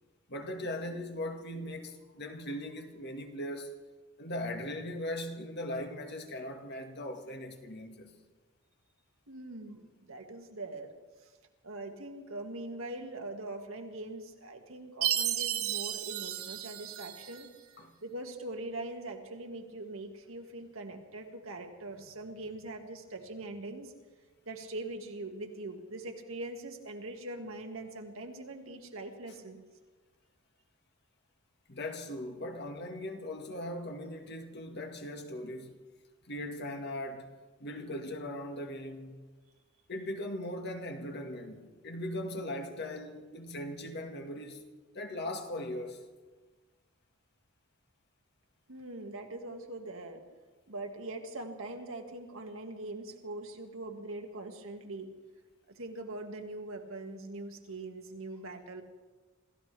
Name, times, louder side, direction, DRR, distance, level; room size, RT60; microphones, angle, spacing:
voice 1, 0.3-3.8 4.2-8.2 17.8-17.9 31.7-35.8 36.3-37.3 37.6-39.2 39.9-44.6 44.9-46.1, left 1 dB, 50° left, 1.8 m, -39 dB
voice 2, 9.3-10.9 11.2-11.3 11.6-17.5 18.0-23.9 24.5-29.6 48.7-50.2 50.7-55.1 55.7-58.8, right 2 dB, 70° right, 2.0 m, -42 dB
Chime, 15.0-17.5, right 11 dB, 85° right, 1.1 m, -33 dB
27.5 x 15.0 x 3.4 m
head